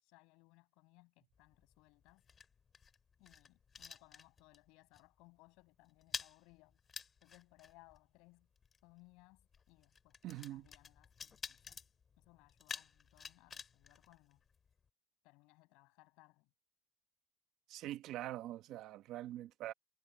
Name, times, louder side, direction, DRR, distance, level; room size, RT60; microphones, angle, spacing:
voice 1, 0.0-2.2 3.2-6.8 7.2-8.5 8.8-11.8 12.2-14.4 15.2-16.5, left 25 dB, 80° left, 7.4 m, -65 dB
sound 1, 1.3-4.7 4.9-5.2 5.5-14.9, left 6 dB, 25° left, 3.1 m, -51 dB
voice 2, 10.2-10.7 17.7-19.7, right 14 dB, 60° right, 1.3 m, -44 dB
cardioid pair, 145°, 0 cm